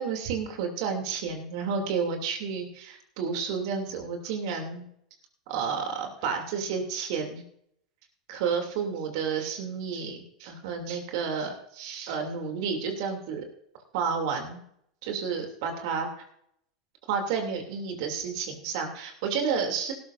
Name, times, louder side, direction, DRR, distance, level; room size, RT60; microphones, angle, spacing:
voice 1, 0.0-4.9 5.5-7.4 8.3-13.4 13.9-14.6 15.0-16.1 17.1-19.9, right 6 dB, 60° right, 3 dB, 2.8 m, -31 dB
18.5 x 13.0 x 2.6 m, 0.70 s
hypercardioid pair, 90°, 3 cm